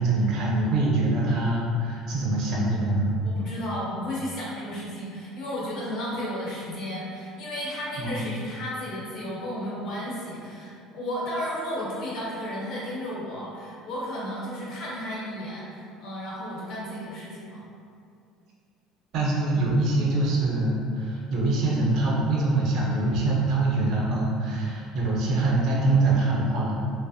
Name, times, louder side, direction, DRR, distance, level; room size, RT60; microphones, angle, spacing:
voice 1, 0.0-3.1 8.0-8.2 19.1-26.8, right 2 dB, 60° right, -4 dB, 0.6 m, -24 dB
voice 2, 3.2-17.6, equal, 55° left, -6 dB, 1.0 m, -33 dB
3.0 x 2.0 x 2.7 m, 2.4 s
cardioid pair, 130°, 0 cm